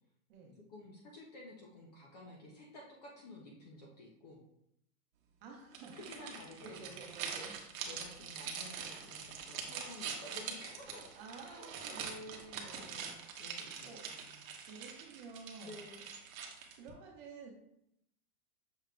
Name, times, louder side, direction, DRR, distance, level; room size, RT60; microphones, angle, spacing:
voice 1, 0.7-4.4 6.0-7.0 7.8-12.0 12.7-14.4 15.6-16.0, left 2 dB, 30° left, -2 dB, 0.4 m, -53 dB
voice 2, 5.4-7.6 7.8-7.9 11.1-12.9 13.8-14.0 14.7-15.8 16.8-17.5, right 4 dB, 35° right, 0 dB, 0.9 m, -51 dB
sound 1, 5.7-16.9, right 6 dB, 65° right, 0.9 m, -44 dB
6.4 x 3.6 x 2.2 m, 0.79 s
supercardioid pair, 165°, 44 cm